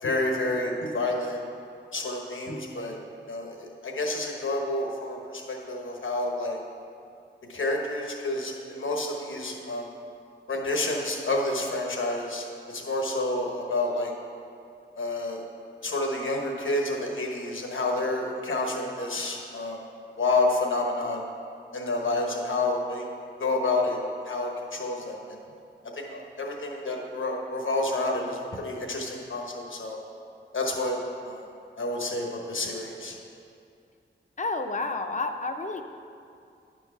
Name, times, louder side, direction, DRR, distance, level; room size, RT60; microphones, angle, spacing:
voice 1, 0.0-1.4 1.9-3.0 3.3-6.6 7.5-9.9 10.5-14.1 15.0-15.4 15.8-19.8 20.2-21.2 21.7-23.1 23.4-24.0 24.2-25.4 25.9-30.0 30.5-31.0 31.2-31.4 31.8-33.1, left 2 dB, 80° left, 1 dB, 1.1 m, -29 dB
voice 2, 34.4-35.8, left 3 dB, 40° left, 6 dB, 0.6 m, -30 dB
10.0 x 4.6 x 5.8 m, 2.5 s
wide cardioid pair, 105°, 20 cm